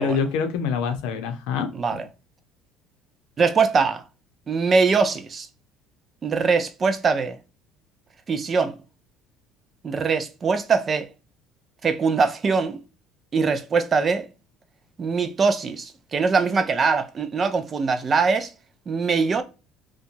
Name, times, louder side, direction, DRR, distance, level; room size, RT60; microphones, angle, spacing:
voice 1, 0.0-2.0, left 6 dB, 90° left, 0.7 m, -26 dB
voice 2, 1.7-2.1 3.4-4.0 4.5-5.5 6.2-7.4 8.3-8.8 9.8-11.1 11.8-12.8 13.3-14.3 15.0-18.5 18.9-19.4, right 5 dB, 25° right, 0.3 m, -22 dB
2.9 x 2.2 x 2.5 m
cardioid pair, 170°, 0 cm